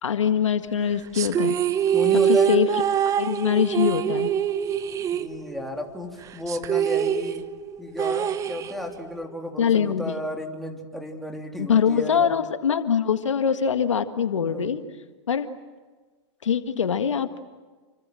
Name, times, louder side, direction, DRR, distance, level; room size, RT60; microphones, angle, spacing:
voice 1, 0.0-1.6 2.3-2.8 3.2-4.3 9.6-10.1 11.6-14.8 15.3-15.5 16.4-17.4, left 7 dB, 85° left, 8 dB, 1.8 m, -23 dB
sound 1, 1.1-5.8 6.1-6.2 6.5-9.1, right 9 dB, 20° right, 1.0 m, -24 dB
voice 2, 1.9-2.5 5.1-7.5 7.8-12.3 14.4-14.7, left 1 dB, ahead, 1 dB, 3.3 m, -33 dB
29.0 x 25.5 x 7.7 m, 1.4 s
hypercardioid pair, 130°, 15 cm